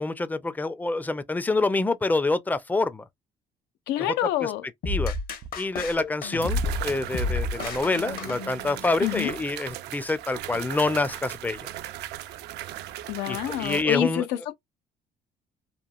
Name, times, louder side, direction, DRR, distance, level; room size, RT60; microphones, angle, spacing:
voice 1, 0.0-3.1 4.0-4.1 4.4-4.5 4.9-5.1 5.6-11.7 13.3-14.3, left 3 dB, 10° left, 0.4 m, -27 dB
voice 2, 3.9-4.6 9.0-9.3 13.1-14.6, left 12 dB, 85° left, 0.5 m, -27 dB
sound 1, 4.8-9.0, left 3 dB, 60° left, 0.9 m, -31 dB
sound 2, 5.4-5.5 6.4-13.8, right 13 dB, 80° right, 0.4 m, -37 dB
2.9 x 2.4 x 2.3 m
cardioid pair, 110°, 17 cm